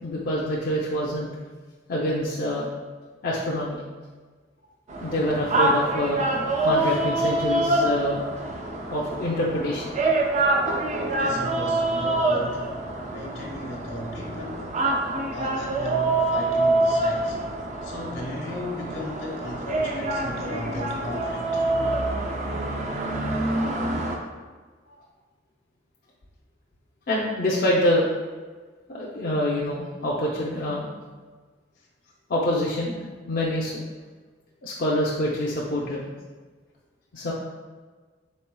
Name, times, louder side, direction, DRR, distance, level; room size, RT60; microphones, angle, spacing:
voice 1, 0.0-1.3 1.9-2.7 3.2-3.8 5.0-6.2 6.6-8.2 8.9-9.9 27.1-28.1 28.9-30.9 32.3-33.0 33.3-33.8 34.6-36.1 37.1-37.3, left 1 dB, 50° left, -5 dB, 0.5 m, -26 dB
The Sharpener, 4.9-24.2, right 2 dB, 40° right, 0.4 m, -26 dB
voice 2, 11.1-12.7 13.1-14.8 15.3-17.4 17.8-21.6 31.8-31.9, left 2 dB, 80° left, -1 dB, 1.1 m, -35 dB
4.2 x 3.9 x 2.2 m, 1.4 s
head